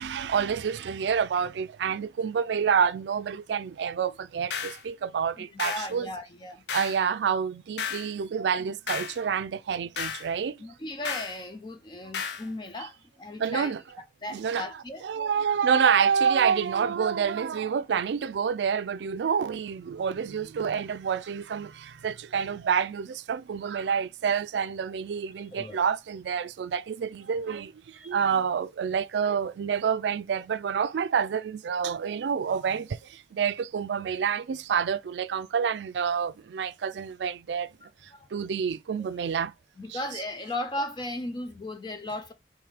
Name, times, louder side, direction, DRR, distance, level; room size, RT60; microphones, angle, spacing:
voice 1, 0.0-6.1 6.7-10.6 13.4-13.8 14.3-14.7 15.0-37.7 38.3-39.5 39.9-40.0, right 7 dB, 80° right, 0.3 m, -28 dB
sound 1, 4.5-4.8 5.6-5.9 6.7-7.0 7.8-8.1 8.9-9.2 10.0-10.3 11.1-11.4 12.1-12.5, left 6 dB, 80° left, 0.6 m, -33 dB
voice 2, 5.4-6.6 10.6-15.0 25.4-25.8 28.0-28.1 37.8-38.3 39.0-39.1 39.8-42.3, left 1 dB, 25° left, 0.3 m, -37 dB
3.5 x 3.1 x 4.8 m
head